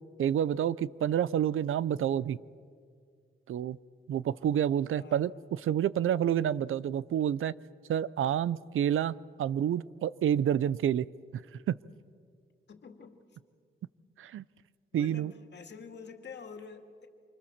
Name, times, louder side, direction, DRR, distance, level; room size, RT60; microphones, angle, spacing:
voice 1, 0.2-2.4 3.5-3.8 4.1-7.5 7.9-11.1 11.7-11.8 14.2-14.4 14.9-15.3, right 10 dB, 85° right, 19 dB, 0.6 m, -28 dB
voice 2, 12.7-13.2 14.9-17.1, left 5 dB, 60° left, 6 dB, 2.3 m, -47 dB
26.5 x 25.0 x 7.4 m, 2.1 s
wide cardioid pair, 125°, 20 cm